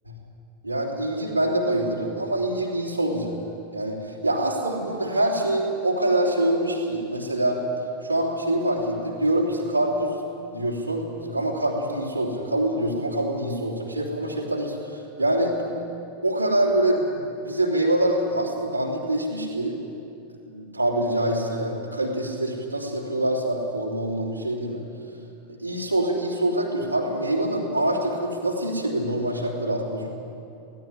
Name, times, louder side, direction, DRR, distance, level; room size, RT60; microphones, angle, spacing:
voice 1, 0.6-3.4 3.7-7.6 8.0-10.1 10.5-15.6 16.2-19.8 20.4-24.8 25.5-30.1, right 1 dB, 85° right, -4 dB, 3.3 m, -25 dB
17.0 x 17.0 x 9.9 m, 2.7 s
figure-of-eight pair, 90°, 0 cm